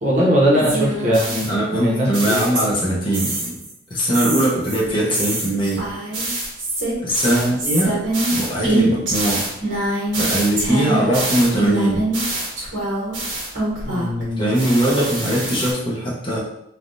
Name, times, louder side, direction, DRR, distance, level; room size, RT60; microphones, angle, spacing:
voice 1, 0.0-2.4 7.2-7.5 13.9-14.5, equal, 40° right, -4 dB, 0.8 m, -20 dB
sound 1, 0.6-2.9 3.1-3.7 4.1-14.2 14.5-15.7, right 2 dB, 85° right, 1.2 m, -24 dB
voice 2, 1.5-3.6 3.9-5.9 7.0-8.0 8.3-9.5 10.2-12.1 14.2-16.4, right 1 dB, 25° left, -4 dB, 0.7 m, -21 dB
3.3 x 2.3 x 2.6 m, 0.77 s
head